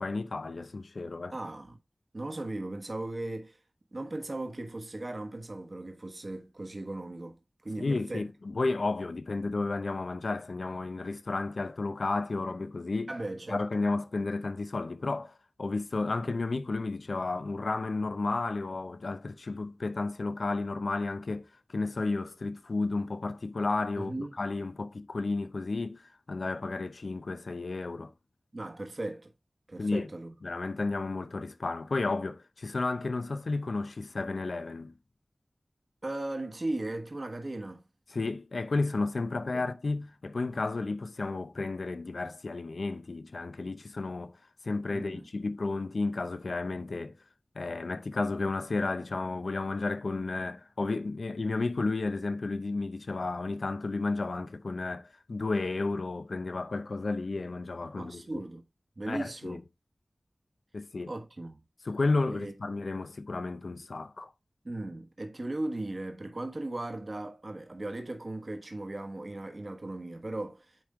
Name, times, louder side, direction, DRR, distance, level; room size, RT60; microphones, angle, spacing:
voice 1, 0.0-1.3 7.8-13.1 13.5-28.1 29.8-30.1 30.4-34.9 38.1-44.4 44.6-47.2 47.5-58.4 59.1-59.6 60.7-61.1 61.8-64.3, left 3 dB, 80° left, 0.7 m, -32 dB
voice 2, 1.3-1.8 2.1-3.6 3.9-7.4 7.6-8.3 13.1-13.6 24.0-24.3 28.5-29.3 29.7-30.3 36.0-37.9 39.5-39.6 44.9-45.3 58.0-58.6 59.0-59.6 61.1-61.6 62.3-62.5 64.6-70.8, right 2 dB, 50° right, 1.3 m, -37 dB
9.2 x 3.6 x 3.7 m
wide cardioid pair, 60°, 0 cm